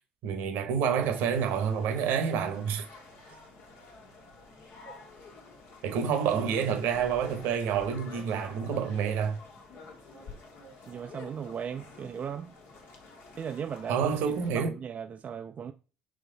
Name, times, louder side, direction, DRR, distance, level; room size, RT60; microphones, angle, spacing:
voice 1, 0.2-2.8 5.8-9.4 13.9-14.7, right 7 dB, 70° right, 1.0 m, -28 dB
sound 1, 1.1-14.5, left 3 dB, 65° left, 1.3 m, -49 dB
voice 2, 10.9-12.5 13.4-15.7, right 7 dB, 40° right, 0.4 m, -38 dB
3.8 x 3.0 x 3.9 m
hypercardioid pair, 70°, 4 cm